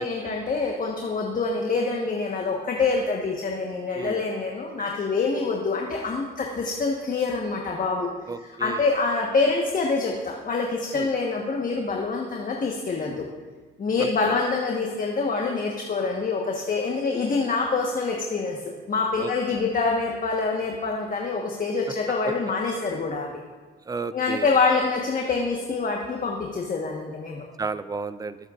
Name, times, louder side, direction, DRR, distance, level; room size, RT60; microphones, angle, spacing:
voice 1, 0.0-8.1 8.6-13.2 13.8-18.6 18.9-23.4 24.1-27.4, left 4 dB, 45° left, 0 dB, 1.3 m, -26 dB
voice 2, 8.3-8.9 10.9-11.1 14.0-14.3 19.2-19.6 23.9-24.6 27.6-28.4, right 4 dB, 20° right, 13 dB, 0.5 m, -33 dB
18.5 x 7.8 x 2.5 m, 1.3 s
cardioid pair, 90°, 20 cm